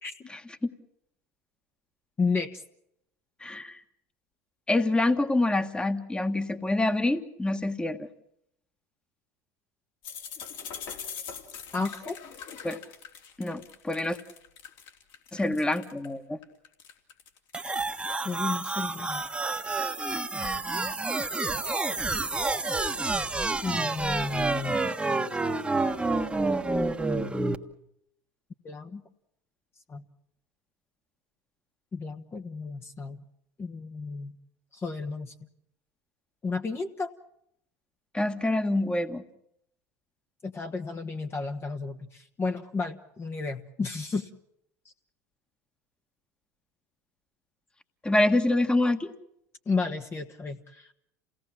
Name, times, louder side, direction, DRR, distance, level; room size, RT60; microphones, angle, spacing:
voice 1, 0.3-0.7 3.4-3.8 4.7-8.1 12.6-12.8 13.4-14.2 15.3-16.4 38.1-39.2 48.0-49.1, left 2 dB, 10° left, 9 dB, 1.7 m, -26 dB
voice 2, 2.2-2.6 11.7-12.2 18.2-19.2 23.6-24.8 28.6-29.0 29.9-30.0 31.9-33.2 33.6-34.3 34.7-35.3 36.4-37.1 40.4-44.3 49.6-50.9, left 4 dB, 25° left, 4 dB, 1.4 m, -32 dB
sound 1, 10.0-16.1 16.4-20.3, left 7 dB, 60° left, 3.5 m, -43 dB
sound 2, 17.5-27.6, right 3 dB, 10° right, 1.5 m, -29 dB
28.0 x 18.0 x 7.4 m, 0.75 s
hypercardioid pair, 85°, 9 cm